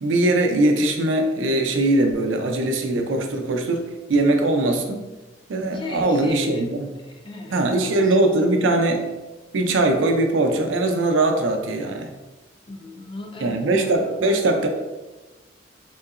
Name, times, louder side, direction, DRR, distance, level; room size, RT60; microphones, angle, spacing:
voice 1, 0.0-5.0 5.5-6.9 7.5-9.0 9.5-12.1 13.4-14.7, right 2 dB, 80° right, 4 dB, 0.4 m, -21 dB
voice 2, 5.7-6.7 7.1-8.7 12.7-14.0, left 2 dB, 25° left, 2 dB, 0.4 m, -38 dB
3.7 x 2.8 x 2.4 m, 1.1 s
head